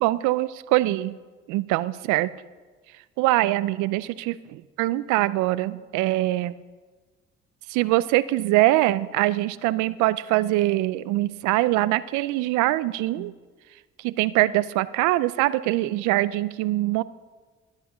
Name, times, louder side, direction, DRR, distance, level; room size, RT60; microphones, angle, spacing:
voice 1, 0.0-1.1 1.5-2.3 3.2-4.3 4.8-6.5 7.7-13.3 14.0-17.0, right 17 dB, 85° right, 17 dB, 0.5 m, -23 dB
10.5 x 10.5 x 7.9 m, 1.4 s
supercardioid pair, 50°, 29 cm